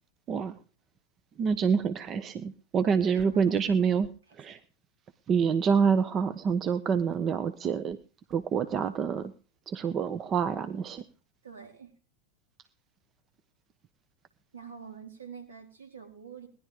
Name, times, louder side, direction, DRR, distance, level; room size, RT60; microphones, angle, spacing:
voice 1, 1.4-4.1 4.4-4.6 5.3-8.0 8.3-9.3 9.7-11.0, right 6 dB, 35° right, 12 dB, 1.2 m, -27 dB
voice 2, 2.8-3.8 4.3-4.4 11.4-11.9 14.5-16.5, right 7 dB, 75° right, 5 dB, 4.4 m, -47 dB
19.5 x 11.5 x 5.1 m, 0.38 s
figure-of-eight pair, 85°, 0 cm